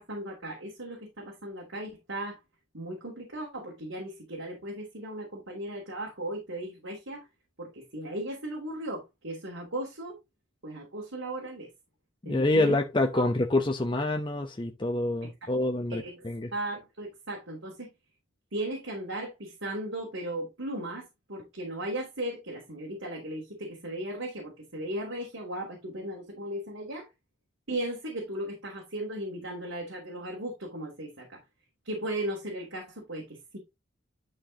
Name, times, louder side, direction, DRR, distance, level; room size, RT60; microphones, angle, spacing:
voice 1, 0.0-2.4 2.7-7.3 7.6-10.2 10.6-11.7 12.2-12.8 13.1-13.3 15.2-15.5 15.9-16.2 16.5-17.9 18.5-27.1 27.7-31.4 31.8-33.6, right 1 dB, 90° right, 3.1 m, -36 dB
voice 2, 12.2-16.5, left 2 dB, 25° left, 0.8 m, -27 dB
11.5 x 4.7 x 2.9 m
head